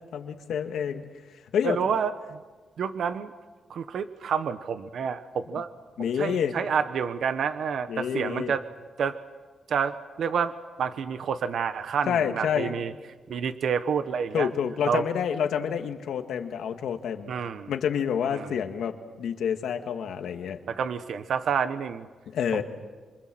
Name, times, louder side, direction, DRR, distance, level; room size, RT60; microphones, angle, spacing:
voice 1, 0.1-1.0 1.3-1.8 6.0-6.6 7.9-8.5 12.1-12.7 14.3-17.3 17.7-20.6 22.3-22.6, left 8 dB, 80° left, 5 dB, 1.9 m, -28 dB
voice 2, 1.6-2.4 2.8-3.3 3.7-5.7 6.0-8.6 9.0-9.2 9.7-12.9 13.3-14.5 14.9-15.0 17.3-17.7 18.3-18.5 20.7-22.1 22.5-22.6, right 6 dB, 65° right, 10 dB, 1.0 m, -29 dB
27.0 x 25.5 x 7.8 m, 1.3 s
wide cardioid pair, 140°, 0 cm